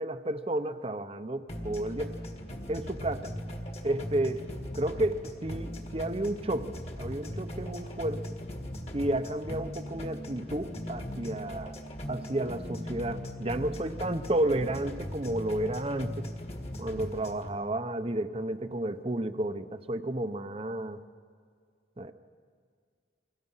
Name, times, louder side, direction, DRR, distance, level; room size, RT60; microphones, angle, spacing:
voice 1, 0.0-2.2 2.7-3.3 3.8-4.5 4.7-8.2 8.9-11.8 12.1-16.3 16.8-21.0 22.0-22.1, right 1 dB, 35° right, 11 dB, 0.9 m, -32 dB
sound 1, 1.5-17.5, equal, 35° left, 1.8 m, -39 dB
29.5 x 23.0 x 5.7 m, 2.1 s
head